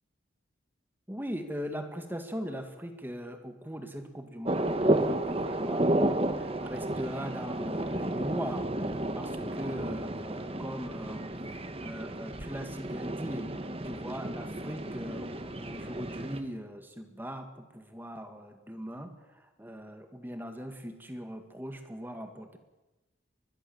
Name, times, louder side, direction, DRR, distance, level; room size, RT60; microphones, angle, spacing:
voice 1, 1.1-11.4 11.8-13.6 13.8-22.6, equal, 10° right, 6 dB, 1.9 m, -40 dB
sound 1, 4.4-16.4, right 1 dB, 30° right, 1.5 m, -32 dB
24.5 x 21.5 x 7.2 m, 1.1 s
head